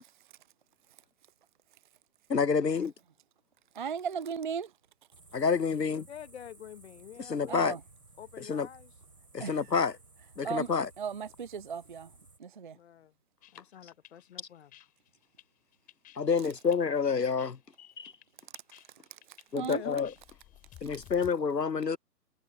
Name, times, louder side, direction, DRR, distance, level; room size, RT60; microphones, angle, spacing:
voice 1, 2.3-2.9 5.3-6.1 7.3-7.8 8.5-8.7 9.3-10.0 10.4-10.9 16.2-17.6 18.0-18.1 19.5-20.1 20.8-22.0, left 5 dB, 85° left, 0.9 m, -28 dB
voice 2, 3.7-4.7 7.5-7.8 9.4-9.7 10.4-10.7 11.0-12.1 12.4-12.8 19.1-19.8, right 7 dB, 35° right, 0.5 m, -36 dB
sound 1, 5.1-12.4, right 3 dB, 80° right, 3.3 m, -57 dB
voice 3, 5.9-7.6 8.2-8.9 12.7-13.1 13.5-14.7 17.8-18.0 19.6-20.1, left 9 dB, 40° left, 1.2 m, -48 dB
sound 2, 13.4-21.3, left 14 dB, 15° left, 4.6 m, -56 dB
figure-of-eight pair, 125°, 48 cm